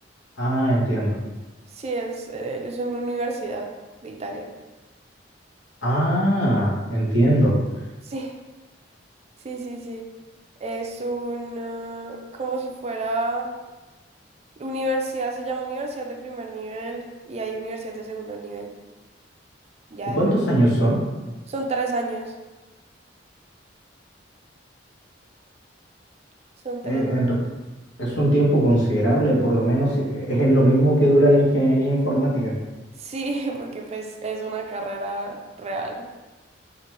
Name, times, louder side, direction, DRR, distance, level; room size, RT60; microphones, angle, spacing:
voice 1, 0.4-1.2 5.8-7.6 20.2-21.0 26.8-27.4 28.0-32.5, right 1 dB, 75° left, -4 dB, 1.2 m, -19 dB
voice 2, 1.7-3.7 4.0-4.5 8.0-8.4 9.4-10.1 10.6-13.5 14.6-18.7 19.9-20.2 21.5-22.3 26.6-27.0 33.0-36.1, right 2 dB, 35° right, 2 dB, 0.4 m, -30 dB
5.2 x 2.4 x 3.1 m, 1.2 s
head